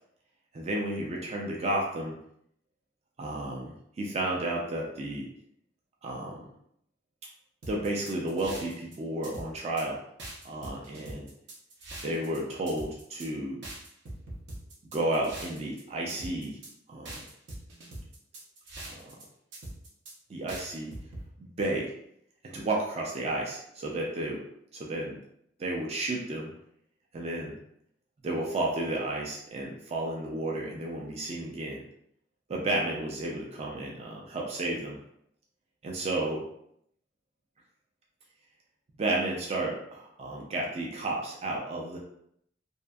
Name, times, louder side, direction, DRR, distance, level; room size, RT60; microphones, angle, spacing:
voice 1, 0.5-2.2 3.2-5.3 6.0-6.4 7.7-10.0 10.4-11.3 12.0-13.6 14.9-16.6 16.9-17.2 18.9-19.1 20.3-20.9 21.4-21.9 22.4-24.4 24.7-25.2 25.6-26.5 27.1-27.5 28.2-31.8 32.5-35.0 35.8-36.4 39.0-42.0, right 1 dB, 35° right, -2 dB, 0.4 m, -32 dB
sound 1, 7.6-8.9 9.2-9.8 10.2-12.4 12.7-13.3 13.6-15.8 16.1-16.7 17.0-19.2 19.5-20.1 20.5-21.2, right 1 dB, 80° right, 0.7 m, -42 dB
2.6 x 2.4 x 2.2 m, 0.72 s
head